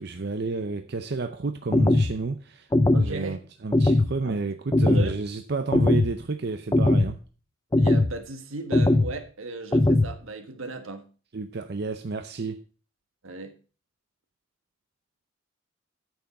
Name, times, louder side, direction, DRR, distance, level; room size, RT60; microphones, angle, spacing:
voice 1, 0.0-2.7 3.0-7.2 11.3-12.6, right 3 dB, 50° right, 0.6 m, -31 dB
sound 1, 1.7-2.1 2.7-3.1 3.7-4.1 4.7-5.1 5.7-6.1 6.7-7.1 7.7-8.1 8.7-9.1 9.7-10.1, left 2 dB, 15° left, 0.4 m, -20 dB
voice 2, 2.9-3.5 4.2-4.4 4.8-5.2 7.8-11.1 13.2-13.5, right 3 dB, 80° right, 1.5 m, -36 dB
9.1 x 7.1 x 5.3 m
head